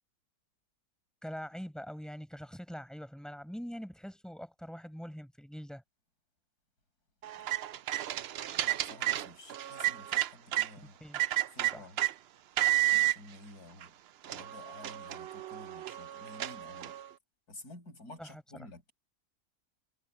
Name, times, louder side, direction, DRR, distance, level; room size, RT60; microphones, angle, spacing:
voice 1, 1.2-5.8 10.8-11.4 11.7-11.9 18.2-18.4, equal, ahead, 7.2 m, -44 dB
sound 1, 7.2-10.7 11.1-12.1 12.6-13.2 13.8-13.9 14.2-17.1, right 14 dB, 70° right, 0.6 m, -31 dB
voice 2, 8.5-11.0 11.5-12.0 12.9-13.9 14.3-16.9 17.5-18.9, left 2 dB, 90° left, 6.4 m, -51 dB
omnidirectional pair, 1.6 m